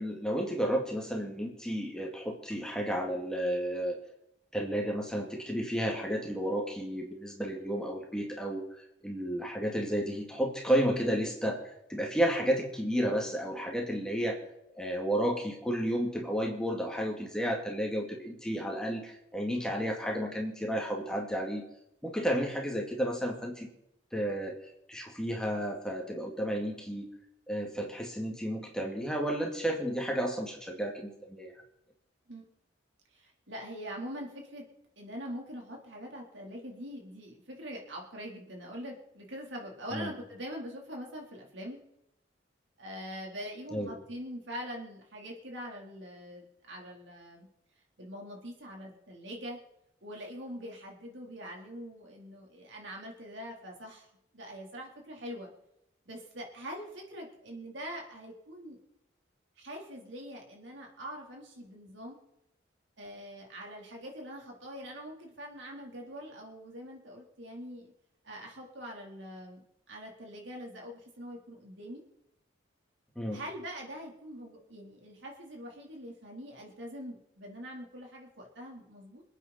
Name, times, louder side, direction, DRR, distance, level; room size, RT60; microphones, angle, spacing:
voice 1, 0.0-4.0 4.5-11.6 11.9-14.4 14.7-21.6 22.0-23.7 24.1-24.6 24.9-27.1 27.5-31.5 39.9-40.1 43.7-43.9 73.2-73.4, equal, 5° left, 0 dB, 2.3 m, -32 dB
voice 2, 33.1-34.7 35.0-41.8 42.8-47.5 48.0-49.6 50.0-54.1 54.3-55.5 56.1-58.8 59.6-62.2 63.0-67.9 68.2-72.0 73.3-79.2, equal, 70° right, 0 dB, 4.0 m, -43 dB
27.0 x 9.1 x 4.4 m, 0.82 s
head